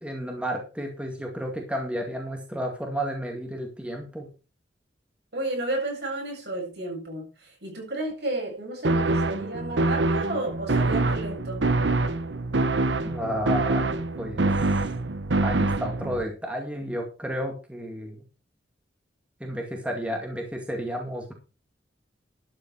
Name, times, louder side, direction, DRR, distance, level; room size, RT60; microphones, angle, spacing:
voice 1, 0.0-4.3 13.0-14.6 15.4-18.2 19.4-21.3, equal, 5° right, 2.0 m, -32 dB
voice 2, 5.3-11.6, right 2 dB, 65° right, 7.7 m, -32 dB
sound 1, 8.8-16.2, right 2 dB, 80° right, 1.1 m, -25 dB
12.0 x 8.8 x 4.7 m
head